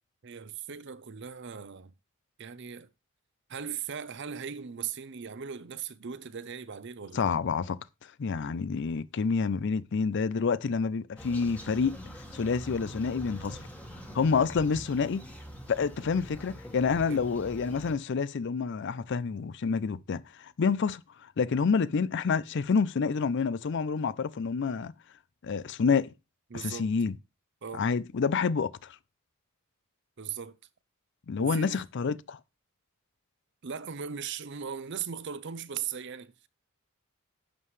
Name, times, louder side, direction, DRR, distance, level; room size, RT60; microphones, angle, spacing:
voice 1, 0.2-1.9 2.4-2.9 3.5-7.2 17.1-17.3 26.5-26.9 27.6-27.8 30.2-30.6 31.4-31.8 33.6-36.5, right 7 dB, 55° right, 0.6 m, -38 dB
voice 2, 7.1-12.0 12.3-13.6 14.1-15.2 15.7-24.9 25.4-26.1 26.5-27.1 27.8-29.0 31.3-32.4, left 5 dB, 55° left, 0.4 m, -28 dB
sound 1, 11.2-17.9, equal, 5° left, 1.6 m, -44 dB
11.0 x 7.5 x 3.2 m
head